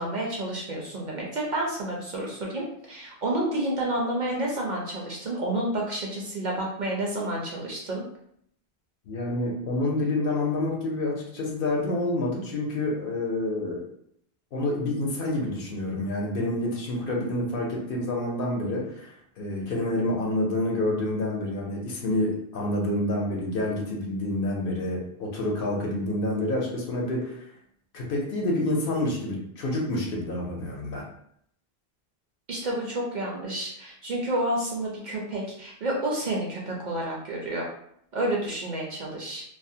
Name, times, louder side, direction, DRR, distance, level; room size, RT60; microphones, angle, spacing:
voice 1, 0.0-8.0 32.5-37.7 38.1-39.4, right 1 dB, 55° right, -2 dB, 0.6 m, -30 dB
voice 2, 9.1-13.9 14.5-27.5 27.9-31.0, left 1 dB, 65° left, -1 dB, 0.7 m, -28 dB
2.4 x 2.0 x 2.6 m, 0.69 s
omnidirectional pair, 1.1 m